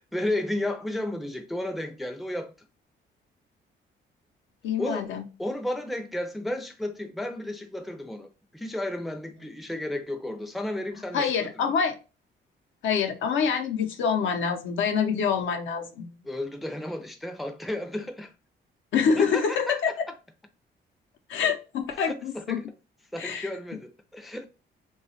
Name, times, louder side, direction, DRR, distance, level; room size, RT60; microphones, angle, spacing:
voice 1, 0.1-2.5 4.8-5.1 5.4-11.5 16.2-18.3 19.2-19.8 21.9-22.6 23.1-24.5, left 1 dB, ahead, 0.4 m, -33 dB
voice 2, 4.6-5.3 11.1-11.9 12.8-16.1 18.9-19.9 21.3-22.6 23.2-23.5, left 6 dB, 75° left, 0.6 m, -26 dB
2.8 x 2.2 x 2.8 m
cardioid pair, 90°, 20 cm